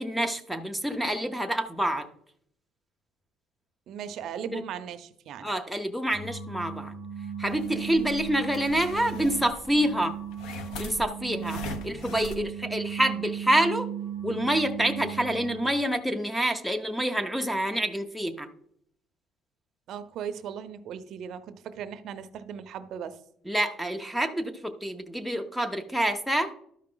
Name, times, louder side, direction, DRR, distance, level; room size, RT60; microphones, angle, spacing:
voice 1, 0.0-2.1 4.5-4.6 5.4-6.9 7.4-10.2 10.8-13.9 14.2-18.5 23.5-26.5, right 1 dB, ahead, 9 dB, 0.5 m, -27 dB
voice 2, 3.9-5.5 19.9-23.2, right 8 dB, 50° right, 11 dB, 0.5 m, -38 dB
sound 1, 6.1-15.8, right 8 dB, 50° left, 2.7 m, -37 dB
sound 2, 7.4-12.4, left 3 dB, 70° left, 0.9 m, -42 dB
12.5 x 4.8 x 3.8 m, 0.69 s
cardioid pair, 165°, 0 cm